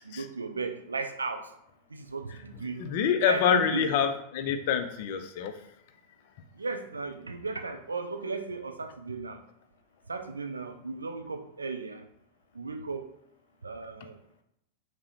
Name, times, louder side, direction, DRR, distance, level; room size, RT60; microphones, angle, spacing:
voice 1, 0.0-1.5 1.9-2.8 3.2-3.9 6.5-9.4 10.1-12.1 12.5-13.1 13.6-14.1, right 4 dB, 75° right, 7 dB, 0.3 m, -35 dB
voice 2, 2.8-5.6, left 7 dB, 50° left, 8 dB, 0.4 m, -26 dB
4.7 x 2.0 x 2.7 m, 0.78 s
figure-of-eight pair, 90°, 0 cm